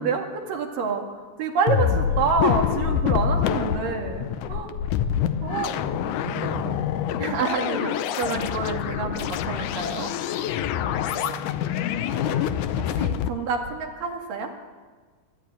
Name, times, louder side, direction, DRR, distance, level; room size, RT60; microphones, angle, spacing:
voice 1, 0.0-4.7 5.4-5.8 7.2-10.1 12.2-12.5 12.8-14.5, right 5 dB, 75° right, 3 dB, 3.6 m, -28 dB
sound 1, 1.7-13.3, left 9 dB, 75° left, 2.1 m, -26 dB
voice 2, 2.0-2.3 5.4-5.5 5.8-6.8 11.0-11.5 12.8-13.0, right 1 dB, 45° left, -1 dB, 7.2 m, -37 dB
24.0 x 13.0 x 9.1 m, 1.4 s
omnidirectional pair, 4.0 m